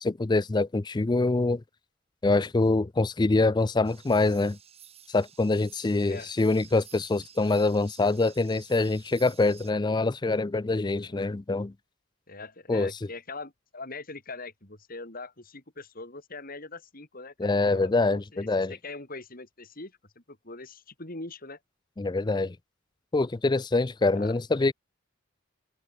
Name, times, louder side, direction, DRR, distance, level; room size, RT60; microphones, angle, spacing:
voice 1, 0.0-1.6 2.2-4.6 5.1-11.7 12.7-12.9 17.4-18.7 22.0-22.6 23.1-24.7, left 3 dB, 20° left, 0.4 m, -25 dB
sound 1, 3.8-9.7, right 8 dB, 30° right, 3.2 m, -53 dB
voice 2, 6.0-6.3 11.0-11.2 12.3-21.6 24.2-24.3, left 3 dB, 45° left, 3.9 m, -42 dB
open air
head